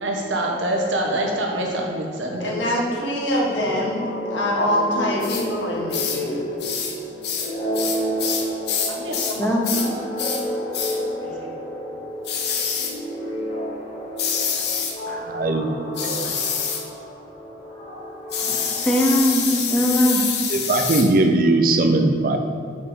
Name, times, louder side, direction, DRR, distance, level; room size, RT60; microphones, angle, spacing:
voice 1, 0.0-2.7 8.9-9.9 11.2-11.5, right 1 dB, 85° right, 0 dB, 1.1 m, -26 dB
voice 2, 2.4-4.0 4.3-6.4, left 1 dB, 75° left, -4 dB, 1.5 m, -24 dB
FX Resonator Vox, 3.4-19.8, equal, 30° left, 1.1 m, -31 dB
sound 1, 5.2-5.4 5.9-6.2 6.6-7.0 7.2-9.4 9.6-9.9 10.2-10.4 10.7-11.0 12.2-13.0 14.2-15.0 15.9-16.8 18.3-21.1, left 7 dB, 60° left, 0.7 m, -26 dB
voice 3, 9.4-9.7 18.4-20.2, equal, 5° left, -2 dB, 0.8 m, -21 dB
voice 4, 15.1-16.3 20.5-22.4, right 2 dB, 50° right, 6 dB, 0.4 m, -20 dB
5.2 x 4.9 x 4.9 m, 2.4 s
head